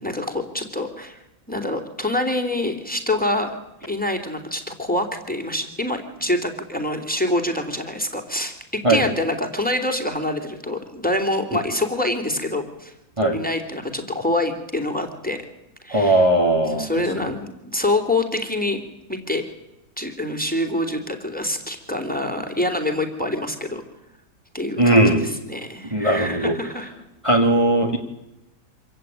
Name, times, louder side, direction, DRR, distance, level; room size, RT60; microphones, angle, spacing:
voice 1, 0.0-1.2 1.5-3.6 3.8-12.9 13.3-15.4 15.8-16.3 16.7-18.8 19.1-19.4 20.0-23.8 24.5-26.9, left 1 dB, 5° left, 5 dB, 3.1 m, -26 dB
voice 2, 15.9-16.9 24.8-25.2 25.9-26.6 27.2-28.0, right 1 dB, 15° right, 0 dB, 2.2 m, -18 dB
26.0 x 16.5 x 9.0 m, 0.92 s
omnidirectional pair, 1.9 m